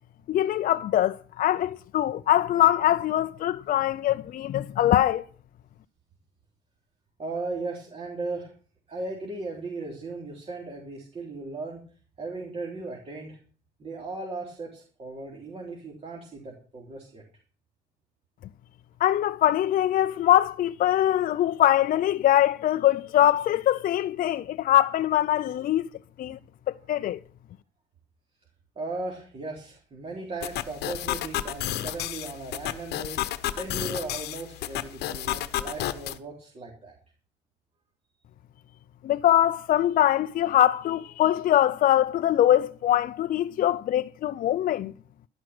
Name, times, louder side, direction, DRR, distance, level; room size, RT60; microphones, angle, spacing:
voice 1, 0.3-5.2 19.0-25.9 26.2-26.4 26.9-27.2 39.0-44.9, left 12 dB, 55° left, 0.5 m, -23 dB
voice 2, 7.2-8.5 8.9-11.8 12.2-13.4 13.8-17.2 28.8-36.9, right 3 dB, 35° right, 3.7 m, -37 dB
sound 1, 30.4-36.2, left 13 dB, 75° left, 1.0 m, -32 dB
12.0 x 11.5 x 6.1 m
cardioid pair, 110°, 17 cm